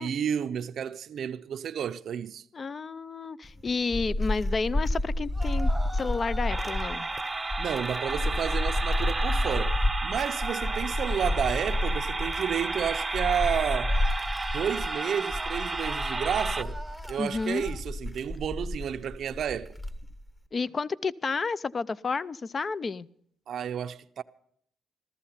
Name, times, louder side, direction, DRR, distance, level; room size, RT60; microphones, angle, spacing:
voice 1, 0.0-2.4 7.6-13.9 14.5-16.8 17.1-19.8 23.5-24.2, right 8 dB, 65° right, 0.5 m, -31 dB
voice 2, 2.5-7.1 17.2-17.7 20.5-23.1, left 4 dB, 35° left, 0.5 m, -31 dB
sound 1, 3.4-20.3, left 1 dB, 20° left, 1.3 m, -30 dB
sound 2, 5.3-9.6 10.3-13.5 13.9-17.8, right 1 dB, ahead, 1.2 m, -43 dB
sound 3, 6.5-16.6, right 3 dB, 20° right, 0.6 m, -33 dB
14.5 x 14.0 x 5.7 m
cardioid pair, 90°, 0 cm